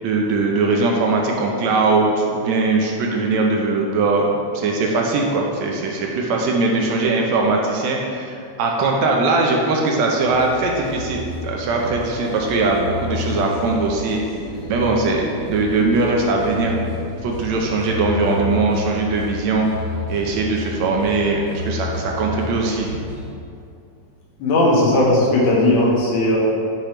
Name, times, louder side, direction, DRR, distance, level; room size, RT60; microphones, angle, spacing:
voice 1, 0.0-14.2 14.7-16.7 17.2-19.7 20.1-22.9, right 3 dB, 75° right, 0 dB, 1.8 m, -20 dB
sound 1, 10.2-23.3, left 2 dB, 60° left, 1.1 m, -31 dB
voice 2, 24.4-26.4, left 1 dB, 80° left, -5 dB, 2.5 m, -16 dB
6.8 x 3.1 x 5.7 m, 2.3 s
omnidirectional pair, 3.4 m